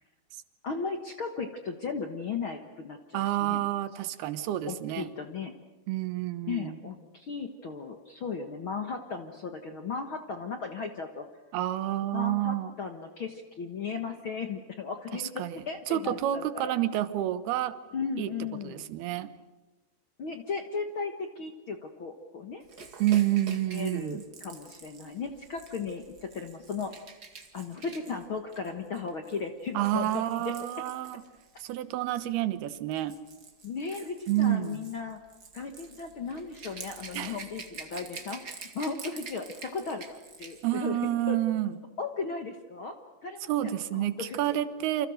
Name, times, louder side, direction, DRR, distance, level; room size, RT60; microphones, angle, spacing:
voice 1, 0.6-3.6 4.7-5.5 6.5-11.3 12.1-16.7 17.9-18.9 20.2-22.6 23.7-26.9 27.5-30.5 33.6-35.2 35.5-41.0 41.3-41.4 42.0-42.9 43.2-44.6, left 5 dB, 65° left, 6 dB, 1.3 m, -36 dB
voice 2, 3.1-5.1 5.9-6.8 11.5-12.7 15.4-15.5 15.9-17.7 18.2-18.3 18.6-19.3 23.0-24.2 29.7-31.2 31.6-33.1 34.3-34.8 37.1-37.4 40.6-41.7 43.5-45.1, right 13 dB, 80° right, 12 dB, 3.1 m, -29 dB
Rattle / Rattle (instrument), 22.7-31.7 32.6-40.7 41.0-41.2, right 4 dB, 35° right, 1.9 m, -47 dB
29.0 x 26.5 x 6.4 m, 1.2 s
omnidirectional pair, 4.5 m